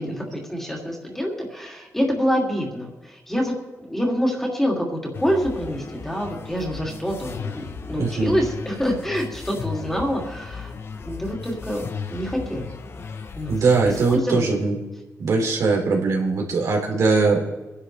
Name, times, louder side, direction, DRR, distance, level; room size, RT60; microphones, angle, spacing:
voice 1, 0.0-3.5 3.8-10.7 11.0-11.8 12.1-12.7 13.3-13.6 14.1-14.4, equal, 5° left, -1 dB, 2.7 m, -26 dB
sound 1, 5.1-14.2, left 5 dB, 45° left, 0.8 m, -36 dB
voice 2, 8.0-8.4 13.5-14.7 15.2-17.6, right 4 dB, 90° right, -1 dB, 3.2 m, -21 dB
25.5 x 11.0 x 3.3 m, 1.1 s
wide cardioid pair, 170°, 5 cm